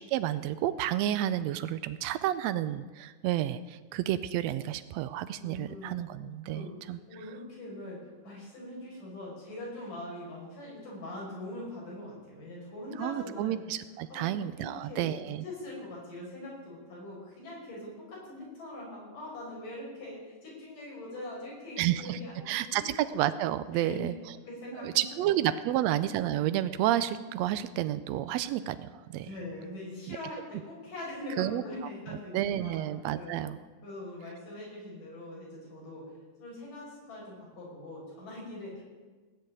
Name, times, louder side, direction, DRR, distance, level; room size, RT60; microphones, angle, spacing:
voice 1, 0.1-7.0 13.0-15.4 21.8-22.2 22.5-24.1 24.7-29.3 30.1-30.2 31.4-31.6 32.3-33.6, right 12 dB, 85° right, 13 dB, 1.5 m, -30 dB
voice 2, 5.4-6.0 6.5-6.8 7.1-13.6 14.1-15.1 15.4-22.9 23.7-24.0 24.5-25.0 25.7-25.8 29.2-32.8 33.1-33.4 33.8-36.1 36.4-38.8, left 1 dB, 90° left, -4 dB, 7.3 m, -42 dB
18.0 x 6.9 x 9.1 m, 1.3 s
omnidirectional pair, 3.6 m